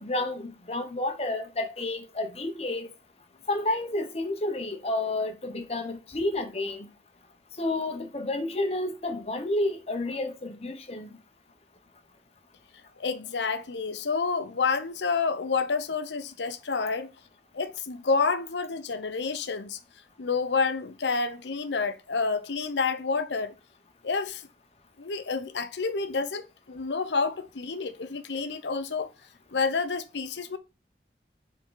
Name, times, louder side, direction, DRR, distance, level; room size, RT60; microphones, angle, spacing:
voice 1, 0.0-2.9 3.5-6.9 7.6-11.1, left 2 dB, 35° left, 1.0 m, -30 dB
voice 2, 13.0-17.1 17.5-19.8 20.2-23.5 24.0-24.4 25.0-29.1 29.5-30.6, left 4 dB, 85° left, 0.8 m, -29 dB
7.4 x 3.9 x 3.9 m
head